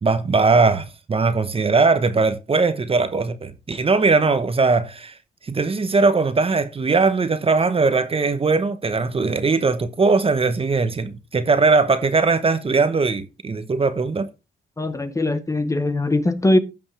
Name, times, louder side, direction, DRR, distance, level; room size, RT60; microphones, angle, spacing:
voice 1, 0.0-5.1 5.4-14.3, right 4 dB, 30° right, 1.0 m, -20 dB
voice 2, 14.8-16.6, left 2 dB, 15° left, 0.9 m, -21 dB
15.0 x 5.3 x 3.3 m
cardioid pair, 90°, 20 cm